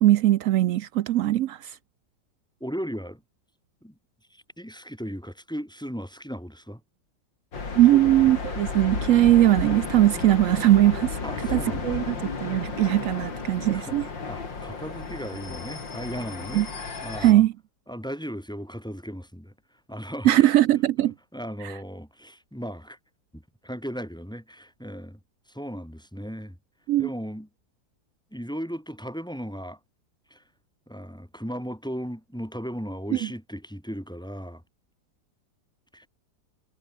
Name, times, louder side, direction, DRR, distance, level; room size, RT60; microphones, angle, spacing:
voice 1, 0.0-1.8 7.7-11.2 11.5-12.2 12.4-14.1 16.5-16.7 17.2-17.5 20.2-21.1 21.6-21.7 26.9-27.1, right 14 dB, 85° right, 0.7 m, -20 dB
voice 2, 2.6-3.2 3.8-3.9 4.3-6.8 7.9-8.3 11.2-12.0 13.7-16.7 17.0-17.4 17.9-19.5 19.9-20.5 21.3-23.0 23.3-25.2 25.5-26.6 27.0-27.5 28.3-29.8 30.3-30.4 30.9-34.6 35.9-36.1, equal, ahead, 2.5 m, -36 dB
sound 1, 7.5-17.3, left 4 dB, 85° left, 4.1 m, -33 dB
omnidirectional pair, 2.0 m